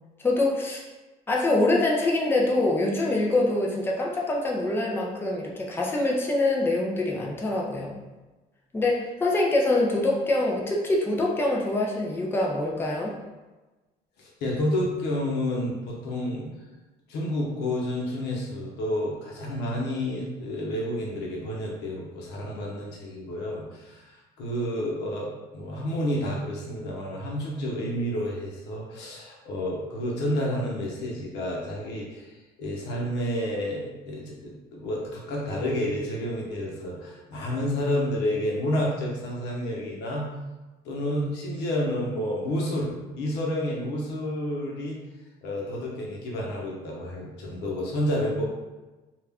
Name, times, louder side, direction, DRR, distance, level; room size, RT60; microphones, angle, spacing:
voice 1, 0.2-0.8 1.3-8.0 8.7-13.1, left 2 dB, 15° left, -2 dB, 0.5 m, -25 dB
voice 2, 14.2-16.5 17.1-24.0 24.4-32.3 32.6-40.3 40.8-42.9 43.2-45.0 45.4-48.5, left 1 dB, 90° left, -2 dB, 0.8 m, -30 dB
2.4 x 2.1 x 3.4 m, 1.2 s
cardioid pair, 110°, 17 cm